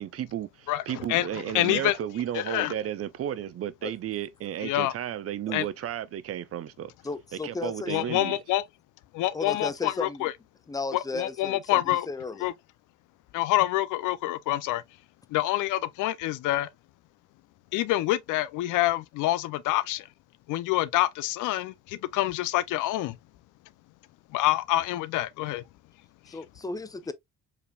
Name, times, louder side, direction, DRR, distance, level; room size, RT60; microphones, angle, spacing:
voice 1, 0.0-6.9 7.4-8.4, right 10 dB, 50° right, 0.5 m, -33 dB
voice 2, 0.7-2.0 2.3-2.7 4.6-4.9 5.5-5.7 7.9-8.6 9.1-10.3 10.9-12.1 12.4-12.5 13.3-14.8 15.3-16.7 17.7-20.1 20.5-23.2 24.3-25.6, left 15 dB, 90° left, 0.5 m, -27 dB
voice 3, 7.0-7.9 9.3-10.3 10.7-12.5 26.3-27.1, left 3 dB, 10° left, 0.4 m, -35 dB
4.7 x 3.3 x 2.2 m
cardioid pair, 90°, 30 cm